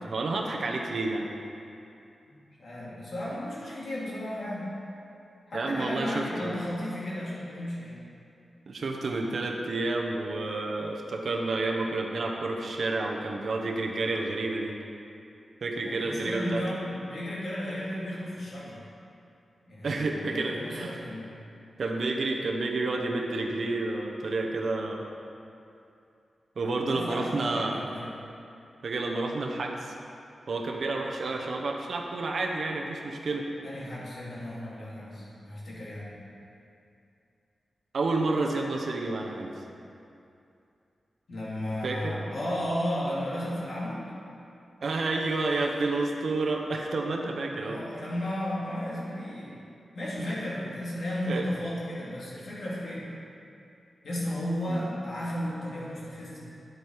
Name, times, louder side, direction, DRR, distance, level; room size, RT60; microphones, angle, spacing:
voice 1, 0.0-1.3 5.5-6.5 8.7-14.7 15.6-16.6 19.8-21.0 21.8-25.0 26.6-27.8 28.8-29.9 30.5-33.5 37.9-39.5 41.8-42.1 44.8-47.8 50.2-50.4 51.3-51.4 54.7-54.9, right 3 dB, 55° right, 1 dB, 0.9 m, -30 dB
voice 2, 2.3-4.7 5.5-8.0 15.7-18.8 19.7-21.3 26.9-28.1 31.3-31.4 33.6-36.2 41.3-44.0 47.5-49.6 49.9-53.0 54.0-56.4, left 1 dB, 55° left, -7 dB, 2.5 m, -34 dB
9.3 x 7.8 x 4.8 m, 2.6 s
wide cardioid pair, 175°, 0 cm